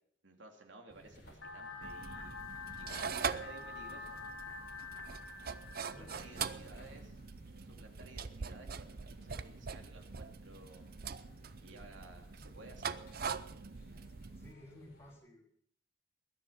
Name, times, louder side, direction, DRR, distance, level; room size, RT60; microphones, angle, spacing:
voice 1, 0.2-2.4 2.8-4.2 5.8-7.2 7.6-10.9 11.6-12.9, right 2 dB, 70° right, 3 dB, 2.8 m, -56 dB
sound 1, 0.9-15.2, left 1 dB, 50° left, 5.0 m, -60 dB
sound 2, 1.4-6.4, left 4 dB, 80° left, 3.7 m, -47 dB
sound 3, 1.8-14.5, right 5 dB, 50° right, 0.6 m, -43 dB
voice 2, 5.9-6.5 14.4-15.4, left 1 dB, 15° left, -1 dB, 3.4 m, -55 dB
20.5 x 10.5 x 5.6 m, 0.65 s
head